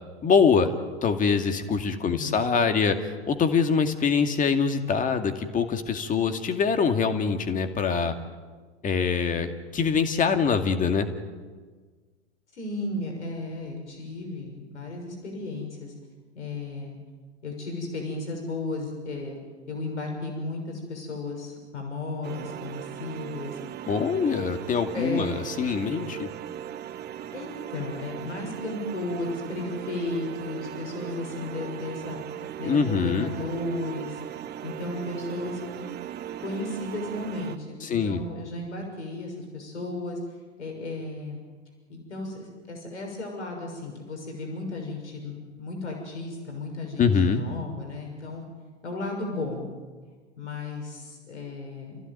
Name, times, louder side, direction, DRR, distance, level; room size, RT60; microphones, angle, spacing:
voice 1, 0.2-0.7 1.0-3.0 3.3-8.1 8.8-11.1 23.9-26.3 32.6-33.3 37.8-38.2 47.0-47.4, left 6 dB, 20° left, 7 dB, 2.3 m, -24 dB
voice 2, 2.0-2.4 12.5-15.9 16.3-17.0 17.4-19.4 19.7-23.6 24.9-25.3 27.3-32.2 32.6-34.2 34.6-35.9 36.4-41.4 41.9-48.4 48.8-49.7 50.4-52.0, left 2 dB, 75° left, 2 dB, 6.5 m, -34 dB
sound 1, 22.2-37.6, right 10 dB, 30° right, 1.5 m, -38 dB
29.5 x 16.0 x 9.3 m, 1.5 s
figure-of-eight pair, 90°, 35 cm